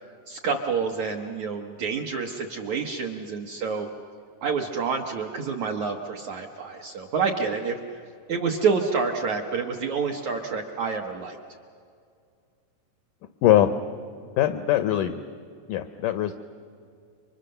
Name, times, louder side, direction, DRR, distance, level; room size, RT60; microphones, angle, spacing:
voice 1, 0.3-3.9 4.4-7.8 8.3-11.4, right 5 dB, 70° right, 2 dB, 1.8 m, -28 dB
voice 2, 13.4-13.7 14.4-15.1 15.7-16.3, left 13 dB, 80° left, 9 dB, 1.8 m, -21 dB
29.5 x 24.5 x 6.7 m, 2.3 s
omnidirectional pair, 4.7 m